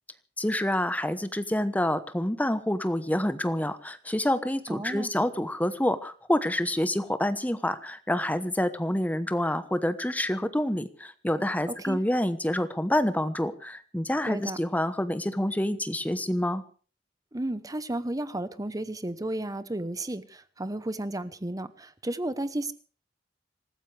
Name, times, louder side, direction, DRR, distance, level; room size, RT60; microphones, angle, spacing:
voice 1, 0.4-16.6, left 1 dB, 10° left, 12 dB, 1.0 m, -27 dB
voice 2, 4.7-5.1 11.7-12.0 14.2-14.6 17.3-22.7, right 1 dB, 20° right, 14 dB, 0.9 m, -33 dB
26.0 x 14.5 x 3.4 m, 0.39 s
head